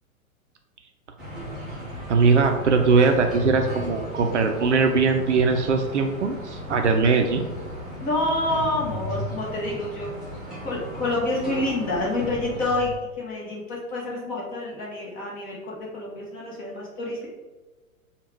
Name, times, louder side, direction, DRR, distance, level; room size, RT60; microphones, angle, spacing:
sound 1, 1.2-13.0, equal, ahead, 0.5 m, -36 dB
voice 1, 2.1-7.4, right 4 dB, 55° right, 5 dB, 0.5 m, -20 dB
voice 2, 8.0-10.1 10.6-17.3, left 2 dB, 20° left, -4 dB, 1.0 m, -28 dB
3.4 x 2.4 x 4.4 m, 1.2 s
figure-of-eight pair, 110°, 42 cm